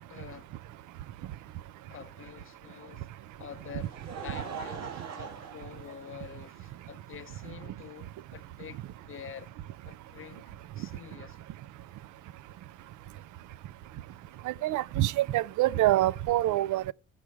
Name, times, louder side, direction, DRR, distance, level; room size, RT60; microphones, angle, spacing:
voice 1, 0.1-0.5 1.9-3.1 3.4-9.5 9.8-11.4, left 9 dB, 45° left, 0.7 m, -47 dB
Laughter, 3.4-6.6 7.4-7.5 9.0-9.1, right 6 dB, 60° right, 2.1 m, -42 dB
voice 2, 14.5-16.9, right 15 dB, 75° right, 0.5 m, -26 dB
14.0 x 6.2 x 4.7 m
cardioid pair, 90°, 30 cm